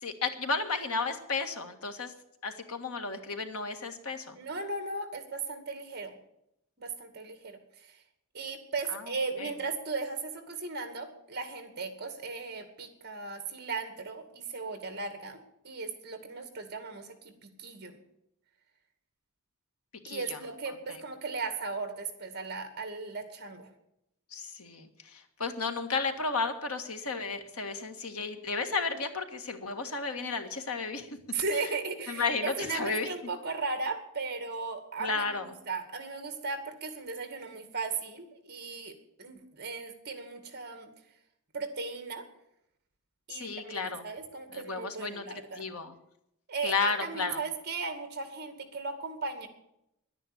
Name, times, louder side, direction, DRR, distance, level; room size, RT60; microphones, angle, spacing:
voice 1, 0.0-2.1 2.4-4.4 8.9-9.0 9.4-9.5 20.0-20.4 24.3-31.1 31.5-31.6 32.1-33.1 35.0-35.5 43.3-44.0 44.5-45.2 45.5-45.9 46.6-47.4, left 4 dB, 85° left, 6 dB, 1.8 m, -33 dB
voice 2, 4.3-6.2 6.8-8.0 8.3-15.4 15.6-17.1 17.4-18.0 20.1-23.7 31.3-40.9 41.5-42.2 43.3-45.7 46.5-49.5, right 4 dB, 45° right, 8 dB, 2.3 m, -37 dB
11.0 x 9.9 x 9.9 m, 0.81 s
head